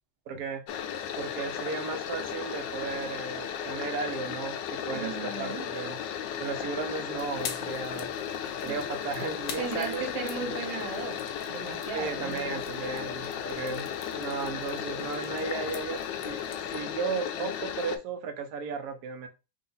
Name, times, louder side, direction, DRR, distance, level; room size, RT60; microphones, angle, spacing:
voice 1, 0.3-0.6 1.2-6.0 6.4-8.1 8.6-10.5 11.9-13.8 14.1-16.0 16.2-16.4 16.7-19.3, right 5 dB, 70° right, 1.1 m, -35 dB
sound 1, 0.7-18.0, left 9 dB, 85° left, 1.3 m, -35 dB
voice 2, 4.9-5.6 8.6-8.8 9.6-11.2 11.5-12.5, right 5 dB, 85° right, 1.6 m, -36 dB
sound 2, 7.2-16.8, left 7 dB, 65° left, 1.1 m, -46 dB
3.8 x 2.5 x 3.9 m
omnidirectional pair, 1.9 m